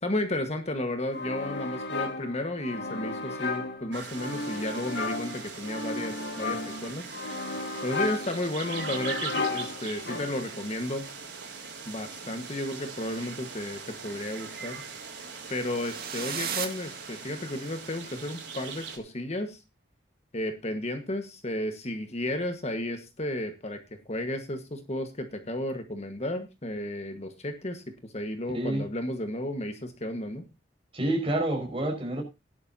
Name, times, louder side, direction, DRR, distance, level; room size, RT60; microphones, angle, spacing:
voice 1, 0.0-7.1 7.8-11.1 11.8-14.8 15.5-19.6 20.3-23.8 24.1-30.4, left 1 dB, 35° left, 1.4 m, -33 dB
sound 1, 1.1-10.6, left 3 dB, 75° left, 1.7 m, -34 dB
sound 2, 3.9-19.0, right 5 dB, 80° right, 4.2 m, -41 dB
sound 3, 15.5-17.7, right 7 dB, 55° right, 2.2 m, -36 dB
voice 2, 28.5-28.8 30.9-32.2, right 1 dB, 30° right, 5.3 m, -28 dB
17.0 x 11.0 x 2.7 m
head